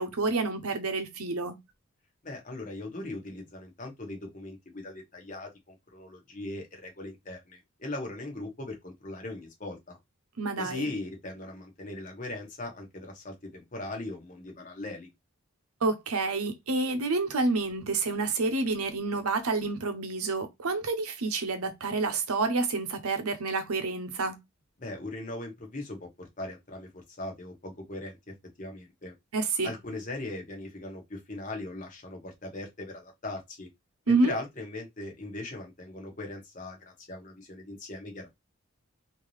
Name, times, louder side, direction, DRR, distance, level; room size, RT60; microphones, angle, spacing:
voice 1, 0.0-1.6 10.4-10.9 15.8-24.4 29.3-29.7 34.1-34.3, right 3 dB, 90° right, 0.9 m, -28 dB
voice 2, 2.2-10.0 10.6-15.1 24.8-29.1 29.6-33.7 34.1-38.3, left 2 dB, 35° left, 1.2 m, -39 dB
3.7 x 2.7 x 3.2 m
head